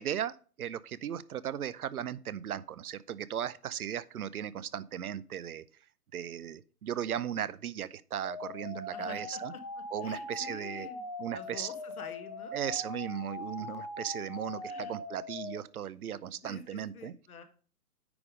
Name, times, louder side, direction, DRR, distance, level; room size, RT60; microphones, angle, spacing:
voice 1, 0.0-5.6 6.1-9.5 9.9-10.9 11.2-11.7 12.5-17.1, right 9 dB, 65° right, 0.7 m, -37 dB
sound 1, 8.2-15.6, left 2 dB, 20° left, 0.4 m, -41 dB
voice 2, 8.9-9.6 10.0-11.0 11.3-12.6 14.6-15.0 16.4-17.4, left 5 dB, 65° left, 1.6 m, -48 dB
9.7 x 3.6 x 5.0 m
hypercardioid pair, 140°, 47 cm